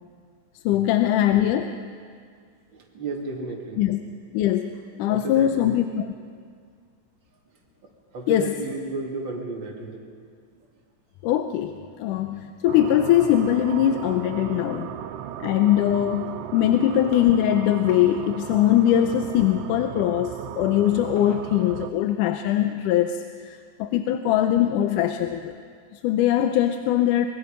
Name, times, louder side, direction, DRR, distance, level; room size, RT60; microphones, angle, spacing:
voice 1, 0.7-1.8 3.8-4.0 4.3-6.1 8.3-8.5 11.2-14.9 15.4-25.5 25.9-27.3, left 11 dB, 85° left, 8 dB, 2.2 m, -22 dB
voice 2, 2.7-3.8 5.1-5.7 7.8-10.0, right 3 dB, 40° right, -1 dB, 3.0 m, -33 dB
sound 1, 12.7-21.9, right 10 dB, 80° right, 1.4 m, -36 dB
24.5 x 22.5 x 5.3 m, 2.1 s
omnidirectional pair, 3.6 m